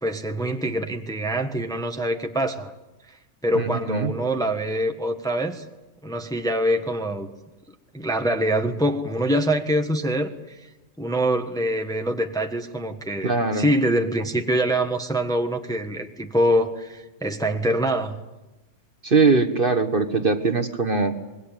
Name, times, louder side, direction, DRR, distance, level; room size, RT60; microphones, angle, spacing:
voice 1, 0.0-2.7 3.4-5.6 6.0-7.3 7.9-10.6 11.0-18.2, right 1 dB, 5° left, 5 dB, 1.3 m, -24 dB
voice 2, 3.5-4.1 13.2-13.7 19.0-21.2, right 4 dB, 40° right, 8 dB, 1.5 m, -21 dB
26.0 x 21.5 x 9.0 m, 1.1 s
omnidirectional pair, 1.5 m